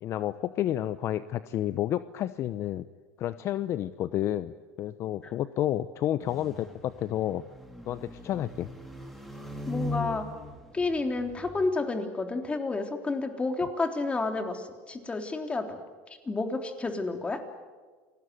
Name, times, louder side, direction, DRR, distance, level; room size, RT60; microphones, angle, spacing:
voice 1, 0.0-2.9 3.2-7.4 7.9-8.7, left 12 dB, 50° left, 14 dB, 0.8 m, -30 dB
sound 1, 6.2-11.7, left 2 dB, ahead, 4.3 m, -40 dB
voice 2, 9.7-10.3 10.7-15.8 16.3-17.4, left 3 dB, 20° left, 6 dB, 3.5 m, -30 dB
28.0 x 19.5 x 9.4 m, 1.4 s
supercardioid pair, 110°, 6 cm